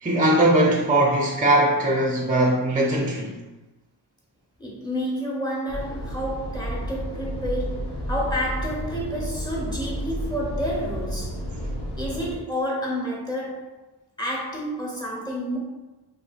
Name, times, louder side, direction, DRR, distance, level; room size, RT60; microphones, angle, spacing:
voice 1, 0.0-3.4, right 1 dB, 20° right, -1 dB, 0.4 m, -20 dB
voice 2, 4.6-11.5 12.0-13.7 14.2-15.6, equal, 10° left, -5 dB, 1.1 m, -29 dB
sound 1, 5.7-12.3, equal, 70° left, 0.8 m, -31 dB
3.2 x 2.6 x 2.4 m, 1.1 s
wide cardioid pair, 65°, 43 cm